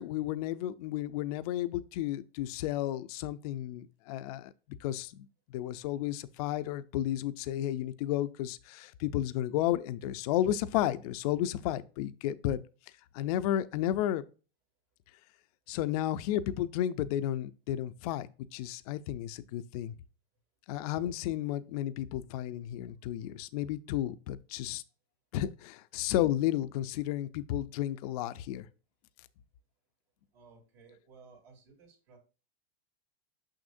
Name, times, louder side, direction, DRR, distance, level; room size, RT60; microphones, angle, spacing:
voice 1, 0.0-4.5 4.8-12.6 13.1-14.2 15.7-19.9 20.7-24.8 25.3-28.7, left 12 dB, 35° left, 0.4 m, -32 dB
voice 2, 30.3-32.2, right 4 dB, 65° right, 3.3 m, -57 dB
6.5 x 6.2 x 2.5 m
supercardioid pair, 155°, 33 cm